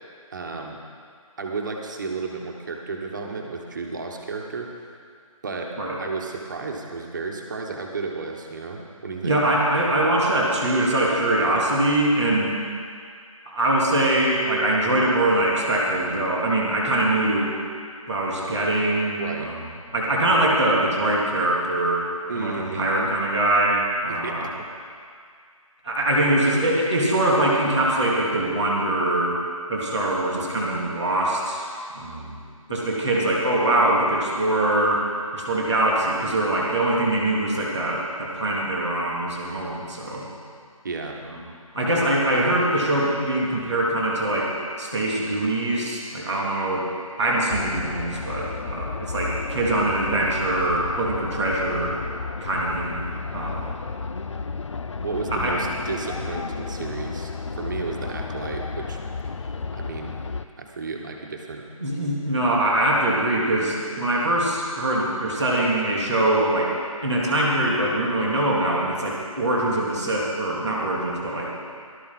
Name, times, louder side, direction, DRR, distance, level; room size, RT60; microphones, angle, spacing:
voice 1, 0.3-0.8 1.4-4.7 5.4-5.7 6.0-9.4 19.2-19.5 22.3-23.1 24.1-24.5 40.8-41.2 55.0-59.0 59.7-60.1 60.6-61.6, right 4 dB, 35° right, 1 dB, 1.4 m, -32 dB
voice 2, 9.2-12.5 13.4-17.5 18.1-19.6 19.9-22.0 22.3-24.5 25.8-29.4 29.7-32.4 32.7-35.0 35.3-40.3 41.7-46.9 47.2-51.9 52.4-53.7 55.3-55.6 61.8-66.7 67.0-71.5, right 1 dB, 5° left, -16 dB, 0.4 m, -23 dB
sound 1, 47.5-60.5, left 4 dB, 55° left, 0.6 m, -32 dB
17.5 x 12.5 x 4.3 m, 2.1 s
figure-of-eight pair, 170°, 18 cm